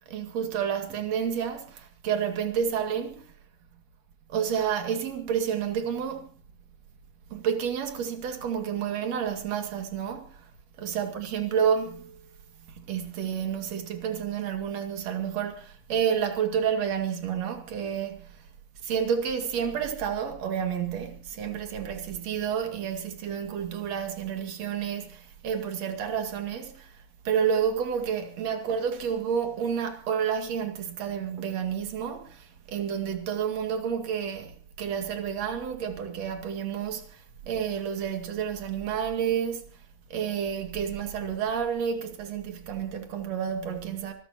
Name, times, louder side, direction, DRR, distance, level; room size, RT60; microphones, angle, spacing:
voice 1, 0.1-3.3 4.3-6.3 7.3-10.4 10.8-12.2 12.8-18.3 18.8-26.9 27.2-39.7 40.1-44.1, right 8 dB, 55° right, 3.3 m, -30 dB
25.0 x 15.0 x 2.9 m
omnidirectional pair, 3.6 m